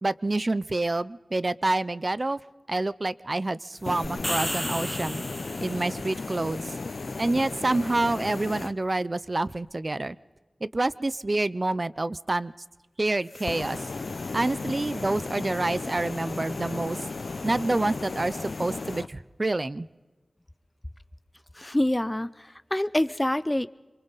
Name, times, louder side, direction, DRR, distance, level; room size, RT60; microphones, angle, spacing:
voice 1, 0.0-2.4 2.7-5.2 5.6-6.6 7.2-10.2 10.6-12.5 13.0-13.8 14.3-17.0 17.4-19.9, right 2 dB, 45° right, 18 dB, 0.6 m, -27 dB
sound 1, 3.7-8.7 13.3-19.1, left 3 dB, 80° left, 0.7 m, -35 dB
sound 2, 4.0-6.0, equal, ahead, 1.7 m, -33 dB
voice 2, 21.5-23.7, left 1 dB, 20° left, 15 dB, 0.7 m, -26 dB
27.0 x 24.0 x 4.1 m, 1.2 s
wide cardioid pair, 45°, 0 cm